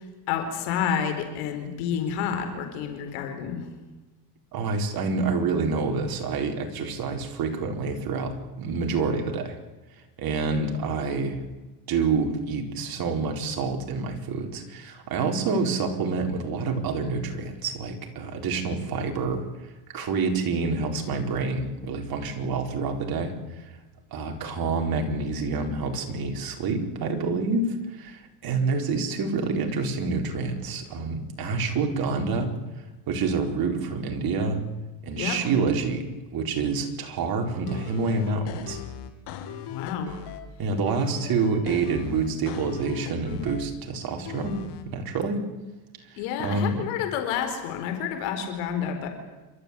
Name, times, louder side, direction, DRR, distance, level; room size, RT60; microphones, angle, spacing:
voice 1, 0.3-3.7 35.1-35.4 39.7-40.1 46.2-49.1, left 8 dB, 75° left, 6 dB, 4.5 m, -29 dB
voice 2, 4.5-9.6 10.2-11.4 11.9-19.4 19.9-23.7 24.1-32.5 33.1-34.6 35.0-36.1 36.3-38.8 40.6-44.6 44.9-45.5 46.1-46.9, right 4 dB, 45° right, 3 dB, 4.4 m, -27 dB
sound 1, 37.7-40.5 40.9-43.7 44.3-44.8, left 9 dB, 55° left, 2.9 m, -38 dB
28.5 x 13.5 x 8.4 m, 1.1 s
supercardioid pair, 110°, 48 cm